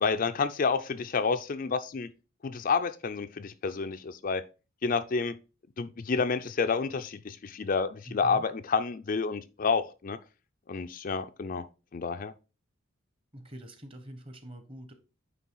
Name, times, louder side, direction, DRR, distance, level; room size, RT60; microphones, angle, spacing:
voice 1, 0.0-2.1 2.4-4.4 4.8-5.4 5.8-10.2 10.7-11.7 11.9-12.3, left 5 dB, 40° left, 0.4 m, -29 dB
voice 2, 8.1-8.4 13.3-14.9, right 1 dB, 25° right, 1.1 m, -44 dB
9.2 x 3.3 x 4.5 m
head